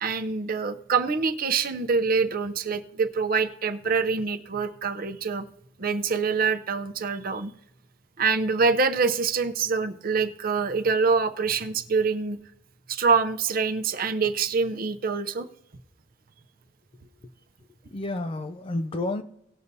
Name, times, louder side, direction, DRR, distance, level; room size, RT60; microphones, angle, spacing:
voice 1, 0.0-5.5 5.8-7.5 8.2-12.4 12.9-15.5, right 5 dB, 50° right, 0.7 m, -25 dB
voice 2, 17.8-19.2, left 2 dB, 30° left, 0.4 m, -31 dB
18.5 x 6.7 x 2.7 m
head